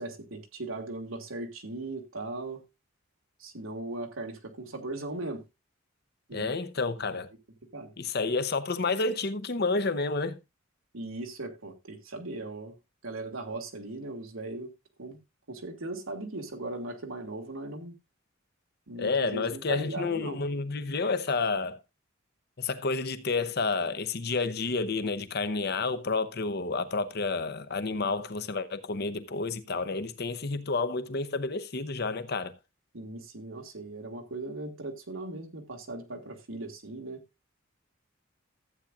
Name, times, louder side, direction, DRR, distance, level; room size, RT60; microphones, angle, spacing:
voice 1, 0.0-2.6 3.4-5.4 6.3-6.5 7.7-7.9 10.9-12.7 13.0-14.7 15.0-15.2 15.5-17.9 18.9-20.4 32.9-37.2, right 2 dB, 80° right, 1.8 m, -38 dB
voice 2, 6.3-7.3 8.0-10.4 19.0-21.8 22.6-32.5, left 3 dB, 50° left, 0.8 m, -30 dB
14.5 x 8.5 x 2.4 m
head